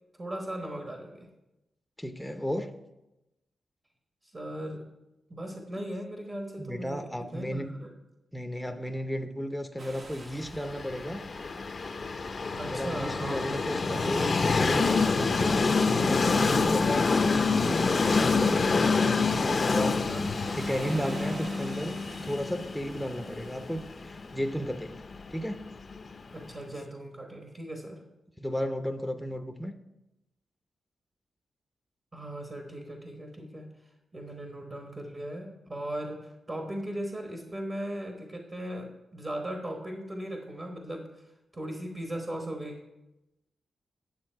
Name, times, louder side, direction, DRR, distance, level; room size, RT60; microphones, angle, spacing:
voice 1, 0.2-1.3 4.2-4.9 5.3-7.9 12.6-14.0 17.8-20.3 26.3-28.0 32.1-33.7 34.1-42.8, right 1 dB, 35° right, 3 dB, 1.2 m, -38 dB
voice 2, 2.0-2.7 6.6-7.7 8.3-11.2 12.6-17.3 19.7-20.0 20.6-22.0 22.2-25.0 25.3-25.6 28.4-29.7, equal, ahead, 6 dB, 0.6 m, -34 dB
sound 1, 9.8-24.3, right 2 dB, 50° right, 0.9 m, -47 dB
Train, 10.6-26.4, left 4 dB, 45° left, 0.5 m, -27 dB
9.7 x 7.0 x 4.5 m, 0.96 s
cardioid pair, 90°, 0 cm